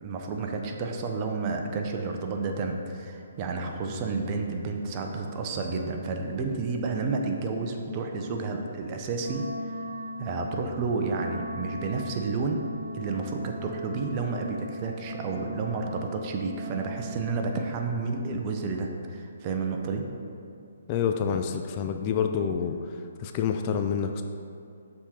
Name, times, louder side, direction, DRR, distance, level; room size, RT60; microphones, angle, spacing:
voice 1, 0.0-9.5 10.2-12.6 12.9-20.0, right 4 dB, 30° right, 3 dB, 0.6 m, -31 dB
Wind instrument woodwind instrument, 9.2-17.6, equal, 85° right, 0.5 m, -39 dB
voice 2, 20.9-22.8 23.2-24.2, left 7 dB, 30° left, 5 dB, 0.3 m, -27 dB
7.0 x 3.7 x 4.3 m, 2.4 s
hypercardioid pair, 140°, 0 cm